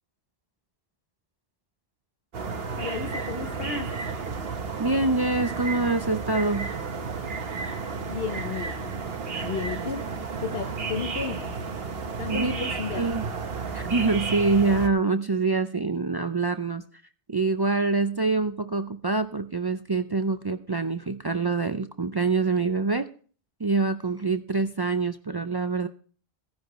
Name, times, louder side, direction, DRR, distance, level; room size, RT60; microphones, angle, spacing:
sound 1, 2.3-14.9, right 5 dB, 65° right, 1.3 m, -32 dB
voice 1, 2.8-3.9 8.1-9.0 9.4-10.0 10.4-11.6 12.2-13.2, left 6 dB, 70° left, 7 dB, 1.1 m, -33 dB
voice 2, 4.8-6.7 12.3-13.2 13.7-16.8 17.3-23.1 23.6-25.9, right 3 dB, 40° right, 9 dB, 0.3 m, -25 dB
16.0 x 10.5 x 3.0 m, 0.42 s
omnidirectional pair, 1.1 m